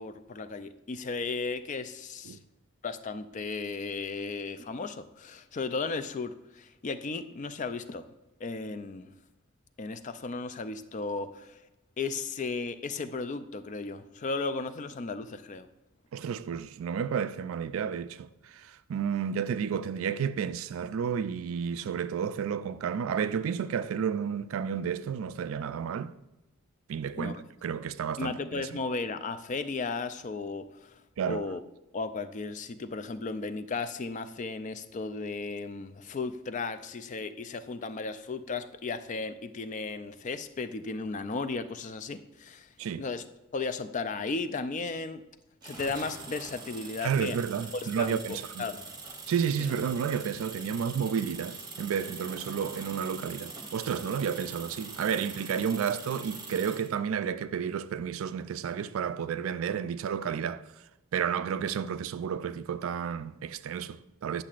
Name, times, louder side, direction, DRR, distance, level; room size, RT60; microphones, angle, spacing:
voice 1, 0.0-2.4 2.8-8.0 8.4-9.1 9.8-11.6 12.0-15.7 27.2-27.4 28.2-31.0 31.3-31.6 31.9-42.7 43.0-43.2 43.5-45.2 45.6-47.4 47.7-48.9 49.6-49.7, left 4 dB, 35° left, 0.4 m, -35 dB
voice 2, 16.1-26.1 26.9-27.4 27.6-28.7 31.2-31.4 42.8-43.0 47.0-48.6 49.3-60.6 61.1-64.4, right 7 dB, 75° right, 0.3 m, -31 dB
sound 1, 45.6-56.9, right 4 dB, 20° right, 0.8 m, -43 dB
10.0 x 6.5 x 2.4 m
head